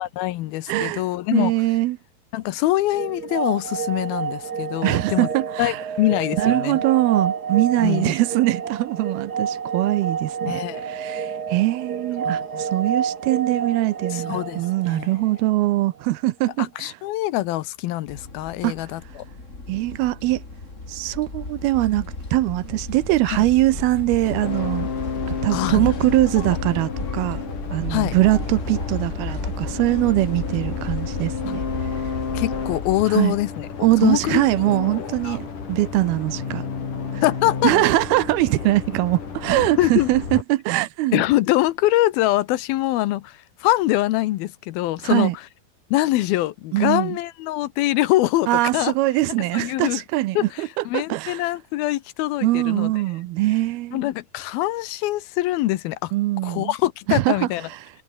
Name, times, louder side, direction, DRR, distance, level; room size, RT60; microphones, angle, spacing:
voice 1, 0.0-1.5 2.3-5.3 5.6-6.8 7.8-8.2 10.5-10.8 12.3-12.6 14.1-14.6 14.9-15.1 16.6-19.2 23.3-23.4 25.5-25.9 26.4-26.6 27.9-28.1 32.3-33.7 34.0-34.5 35.2-35.4 37.2-37.7 39.8-40.1 41.1-45.3 45.9-48.9 49.5-50.0 50.4-52.9 53.9-56.1 56.4-57.7, left 16 dB, 75° left, 2.7 m, -24 dB
voice 2, 0.7-1.0 1.3-2.0 4.8-5.8 6.4-17.0 18.6-18.8 19.7-20.4 20.9-24.9 25.3-27.4 27.7-31.6 33.1-33.4 33.8-36.6 37.1-37.2 37.6-41.2 45.0-45.4 46.7-47.2 48.5-50.7 50.9-51.5 52.4-54.0 56.1-56.7 57.1-57.5, right 17 dB, 80° right, 2.7 m, -22 dB
sound 1, 2.9-15.7, right 6 dB, 60° right, 1.0 m, -29 dB
sound 2, 18.1-33.0, left 3 dB, 20° left, 3.7 m, -33 dB
sound 3, 24.2-40.4, left 6 dB, 55° left, 5.6 m, -32 dB
omnidirectional pair, 4.5 m